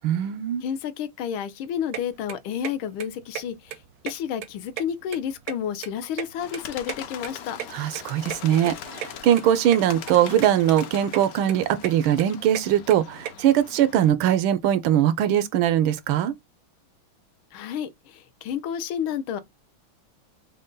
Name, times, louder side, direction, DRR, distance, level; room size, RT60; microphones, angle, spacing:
voice 1, 0.0-0.6 7.7-16.3, right 11 dB, 90° right, 1.4 m, -21 dB
voice 2, 0.6-7.6 17.5-19.4, left 9 dB, 85° left, 1.5 m, -31 dB
sound 1, 1.9-2.0 2.3-2.7 3.0-3.1 3.3-3.4 3.7-4.5 4.7-5.9 6.2-7.7 7.9-8.0 8.3-8.4 8.7-8.8 9.0-9.1 9.4-9.8 10.1-10.5 10.8-11.2 11.5-13.3, right 10 dB, 70° right, 0.9 m, -33 dB
Bird, 6.4-14.1, left 9 dB, 65° left, 0.9 m, -41 dB
5.2 x 2.2 x 3.7 m
omnidirectional pair, 2.2 m